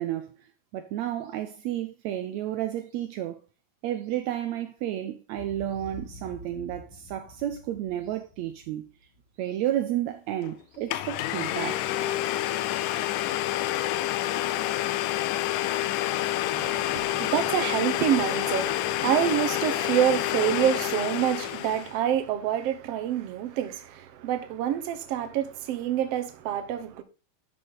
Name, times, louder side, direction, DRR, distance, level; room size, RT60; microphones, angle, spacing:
voice 1, 0.0-3.4 3.8-8.9 9.4-11.8 12.4-12.5, right 12 dB, 80° right, 1.6 m, -32 dB
Boom, 5.3-9.6, left 1 dB, 65° left, 4.3 m, -47 dB
Domestic sounds home sounds, 10.4-10.5 10.9-22.0, left 14 dB, 80° left, 2.0 m, -28 dB
voice 2, 16.5-27.0, right 10 dB, 65° right, 1.6 m, -27 dB
11.5 x 5.2 x 3.9 m
omnidirectional pair, 3.9 m